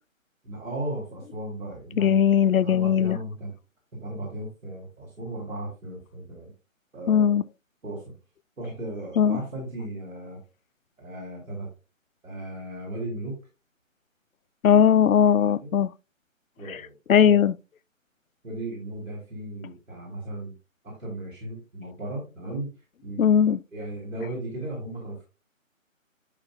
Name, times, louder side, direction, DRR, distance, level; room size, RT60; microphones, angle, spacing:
voice 1, 0.4-2.2 2.6-3.5 4.0-6.5 6.9-7.3 7.8-8.1 8.6-10.4 11.0-11.7 12.2-13.4 15.6-15.8 16.6-17.4 18.4-20.5 20.8-22.8 23.0-23.4 23.7-25.2, right 1 dB, 75° right, 3.9 m, -36 dB
voice 2, 2.0-3.2 7.1-7.4 9.2-9.4 14.6-15.9 17.1-17.5 23.2-23.6, left 8 dB, 80° left, 0.6 m, -19 dB
11.5 x 5.3 x 2.3 m
hypercardioid pair, 180°, 41 cm